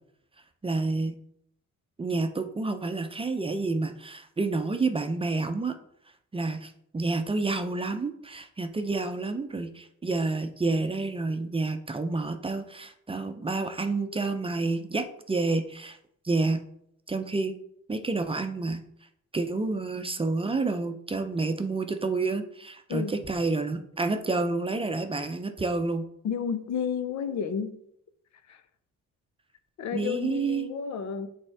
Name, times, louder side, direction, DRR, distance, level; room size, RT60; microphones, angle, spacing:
voice 1, 0.6-1.1 2.0-5.7 6.3-16.0 16.2-16.6 17.1-17.5 17.9-18.8 19.3-26.0 29.9-30.7, right 3 dB, 20° right, 7 dB, 0.6 m, -29 dB
voice 2, 26.2-27.8 28.5-28.6 29.8-31.3, left 7 dB, 65° left, 10 dB, 0.7 m, -31 dB
8.0 x 3.4 x 3.5 m, 0.71 s
cardioid pair, 90°, 30 cm